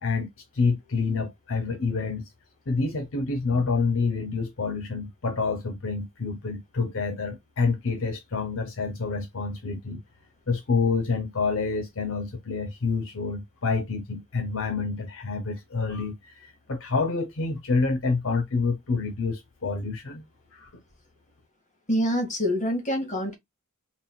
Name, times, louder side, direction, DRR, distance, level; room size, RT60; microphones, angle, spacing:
voice 1, 0.0-2.3 2.7-10.0 10.5-20.2 20.5-20.8, left 4 dB, 65° left, 0.7 m, -28 dB
voice 2, 21.9-23.3, equal, 35° left, 1.8 m, -26 dB
4.0 x 3.8 x 2.2 m
head